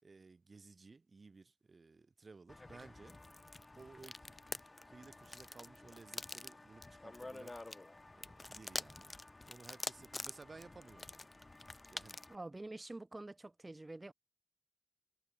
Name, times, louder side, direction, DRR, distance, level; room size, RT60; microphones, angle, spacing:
voice 1, 0.0-3.2 3.8-4.5 4.9-7.6 8.1-9.1 9.5-11.3 11.9-12.2, right 4 dB, 80° right, 4.0 m, -57 dB
sound 1, 2.5-12.4, left 2 dB, 45° left, 1.0 m, -48 dB
voice 2, 12.3-14.1, right 2 dB, 40° right, 0.5 m, -47 dB
wide cardioid pair, 50°, 0 cm